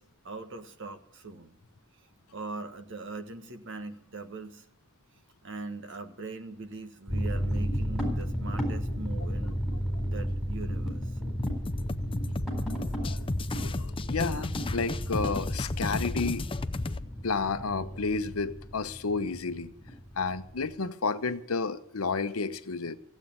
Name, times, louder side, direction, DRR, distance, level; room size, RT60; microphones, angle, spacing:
voice 1, 0.0-1.5 2.3-4.6 5.4-9.6 10.0-11.1, right 3 dB, 60° right, 1.5 m, -41 dB
sound 1, 7.1-20.7, equal, ahead, 4.0 m, -33 dB
sound 2, 11.4-17.0, left 2 dB, 25° left, 0.5 m, -34 dB
voice 2, 13.6-16.5 17.2-19.7 20.2-23.0, left 4 dB, 85° left, 0.9 m, -31 dB
15.0 x 8.3 x 8.8 m
head